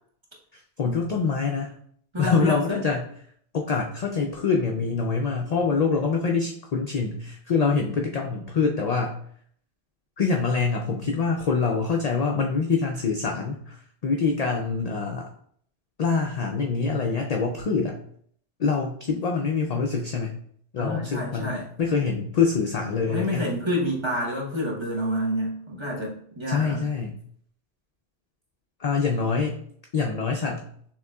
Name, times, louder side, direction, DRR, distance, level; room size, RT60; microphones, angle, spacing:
voice 1, 0.8-1.7 2.2-3.1 3.5-9.2 10.2-13.7 14.0-15.3 16.0-18.0 18.6-20.4 20.7-23.5 26.5-27.2 28.8-29.5 29.9-30.7, left 4 dB, 55° left, 1 dB, 0.4 m, -25 dB
voice 2, 2.1-2.8 20.8-21.7 23.1-26.8, left 1 dB, 25° right, -4 dB, 1.0 m, -28 dB
6.4 x 3.2 x 2.3 m, 0.63 s
omnidirectional pair, 1.1 m